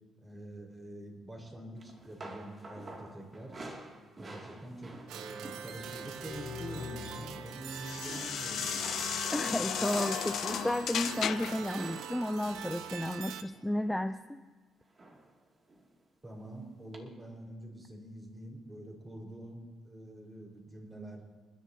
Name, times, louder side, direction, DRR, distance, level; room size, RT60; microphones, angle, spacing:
voice 1, 0.2-3.5 4.2-9.0 16.2-21.2, right 1 dB, 20° right, -1 dB, 4.7 m, -46 dB
sound 1, 1.8-6.3 6.6-6.9 7.2-7.7 8.1-14.1 15.0-15.3 15.7-15.9 16.9-17.0, right 2 dB, 35° right, 2.5 m, -49 dB
sound 2, 5.1-13.4, right 9 dB, 90° right, 0.8 m, -43 dB
sound 3, 5.8-11.7, left 9 dB, 70° left, 0.5 m, -36 dB
voice 2, 9.3-14.4, left 1 dB, 5° left, 9 dB, 0.5 m, -33 dB
29.5 x 10.5 x 2.9 m, 1.4 s
cardioid pair, 90°, 0 cm